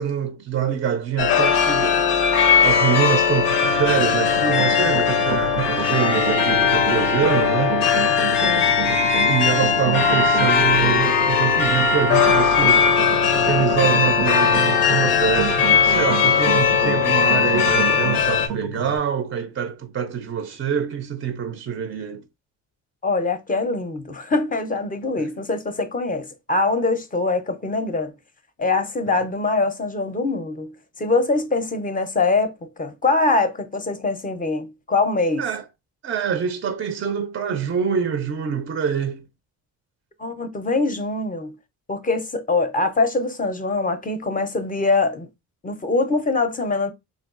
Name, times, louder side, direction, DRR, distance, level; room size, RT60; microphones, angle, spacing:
voice 1, 0.0-7.8 8.8-13.0 13.3-22.2 29.1-29.2 35.4-35.6 36.0-39.2, right 8 dB, 35° right, 0.4 m, -25 dB
sound 1, 1.2-18.5, left 6 dB, 90° left, 0.6 m, -19 dB
sound 2, 3.6-19.0, right 6 dB, 85° right, 0.6 m, -30 dB
voice 2, 23.0-28.1 28.6-35.5 40.2-41.6 41.9-45.3 45.6-46.9, left 3 dB, 20° left, 0.5 m, -23 dB
3.4 x 2.3 x 2.4 m
supercardioid pair, 70°, 39 cm